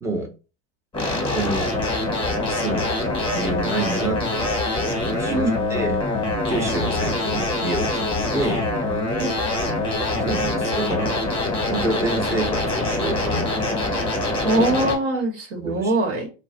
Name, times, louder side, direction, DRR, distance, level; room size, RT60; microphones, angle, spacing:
voice 1, 0.0-0.3 1.3-1.7 2.5-2.9 3.3-4.6 5.0-6.0 6.5-8.7 10.2-11.2 11.7-13.5 15.6-15.9, right 2 dB, 10° right, 0.6 m, -28 dB
sound 1, 0.9-14.9, left 2 dB, 15° left, 0.9 m, -24 dB
voice 2, 14.4-16.3, right 2 dB, 70° right, 1.1 m, -22 dB
2.3 x 2.0 x 3.8 m
hypercardioid pair, 100°, 37 cm